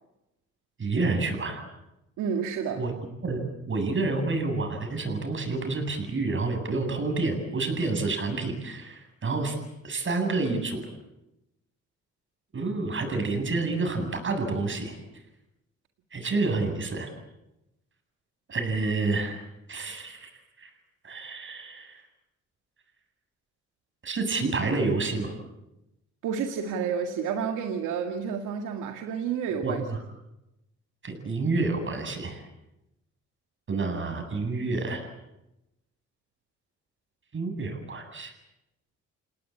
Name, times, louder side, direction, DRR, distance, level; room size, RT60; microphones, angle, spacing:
voice 1, 0.8-1.6 2.8-2.9 3.2-9.6 9.8-10.9 12.5-15.0 16.1-17.1 18.5-20.3 20.6-20.7 21.0-22.0 24.0-25.3 29.6-30.0 31.0-32.4 33.7-35.1 37.3-38.3, right 3 dB, 40° right, 5 dB, 8.0 m, -29 dB
voice 2, 2.2-2.8 26.2-29.8, right 7 dB, 90° right, 5 dB, 2.1 m, -30 dB
29.0 x 18.5 x 8.7 m, 0.92 s
cardioid pair, 90°, 30 cm